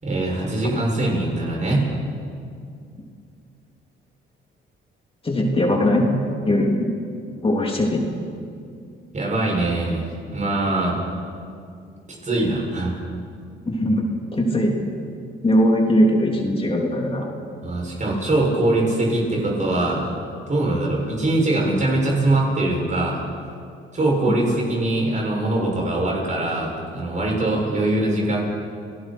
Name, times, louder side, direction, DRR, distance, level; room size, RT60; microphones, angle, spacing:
voice 1, 0.0-1.9 9.1-11.0 12.2-13.0 17.6-20.1 20.5-23.2 23.9-28.4, right 2 dB, 40° right, -2 dB, 7.5 m, -22 dB
voice 2, 5.2-6.1 6.5-6.9 7.4-8.0 13.7-14.7 15.4-17.3 24.3-24.4, equal, 30° left, 0 dB, 3.4 m, -20 dB
30.0 x 19.0 x 4.7 m, 2.4 s
cardioid pair, 90°, 20 cm